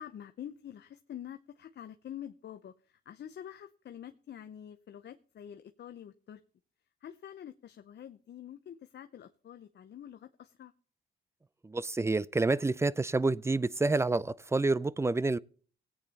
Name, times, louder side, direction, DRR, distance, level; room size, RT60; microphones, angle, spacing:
voice 1, 0.0-6.4 7.0-10.7, left 10 dB, 60° left, 0.8 m, -47 dB
voice 2, 11.6-15.4, right 3 dB, 15° right, 0.5 m, -28 dB
17.0 x 8.8 x 4.1 m
cardioid pair, 80°, 20 cm